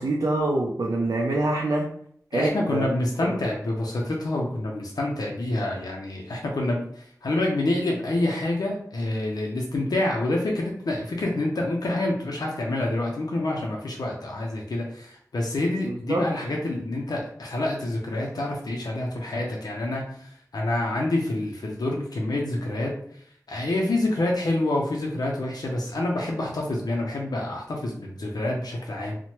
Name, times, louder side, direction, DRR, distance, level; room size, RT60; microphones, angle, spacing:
voice 1, 0.0-1.9 2.3-2.9 3.2-3.4 15.8-16.2, right 2 dB, 75° right, -2 dB, 0.4 m, -25 dB
voice 2, 2.3-29.2, left 2 dB, 90° left, -1 dB, 0.4 m, -27 dB
3.0 x 2.0 x 2.8 m, 0.62 s
wide cardioid pair, 65°, 7 cm